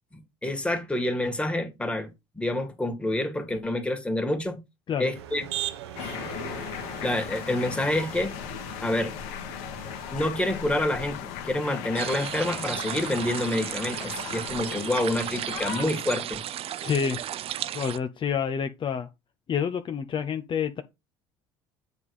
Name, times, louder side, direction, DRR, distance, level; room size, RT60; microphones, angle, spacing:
voice 1, 0.4-4.6 5.0-5.5 7.0-8.3 8.8-9.1 10.1-16.4, left 1 dB, 10° left, 2.0 m, -28 dB
Motor vehicle (road), 5.1-10.7, right 11 dB, 85° right, 0.9 m, -39 dB
sound 1, 6.0-15.9, left 9 dB, 75° left, 1.5 m, -37 dB
sound 2, 11.9-18.0, right 11 dB, 45° right, 0.6 m, -34 dB
voice 2, 16.8-17.2 17.7-19.1 19.5-20.8, left 7 dB, 35° left, 0.8 m, -28 dB
8.0 x 3.7 x 4.8 m
hypercardioid pair, 80°, 13 cm